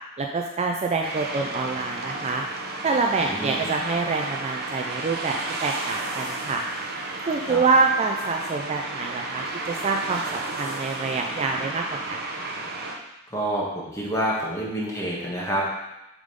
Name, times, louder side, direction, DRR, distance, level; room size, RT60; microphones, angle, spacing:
voice 1, 0.2-2.4 2.8-6.6 7.3-12.2, right 4 dB, 30° right, 2 dB, 0.4 m, -26 dB
sound 1, 1.0-13.0, right 2 dB, 45° right, 0.8 m, -33 dB
voice 2, 3.2-3.7 7.4-7.6 13.3-15.7, right 1 dB, 15° left, -5 dB, 1.6 m, -28 dB
7.1 x 3.7 x 5.1 m, 0.92 s
head